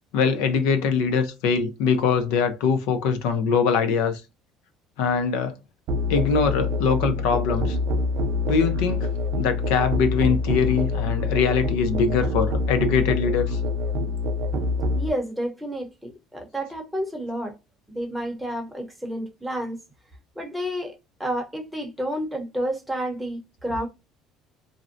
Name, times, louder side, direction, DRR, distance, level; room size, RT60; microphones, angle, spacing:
voice 1, 0.1-4.2 5.0-5.6 6.1-7.8 8.5-9.1 9.4-13.6, left 5 dB, 90° left, 0.6 m, -22 dB
Musical instrument, 5.9-15.1, left 3 dB, 60° right, 0.3 m, -25 dB
voice 2, 15.0-17.6 17.9-19.8 20.4-20.9 21.2-23.9, equal, ahead, 0.8 m, -30 dB
2.6 x 2.1 x 2.5 m
cardioid pair, 135°, 0 cm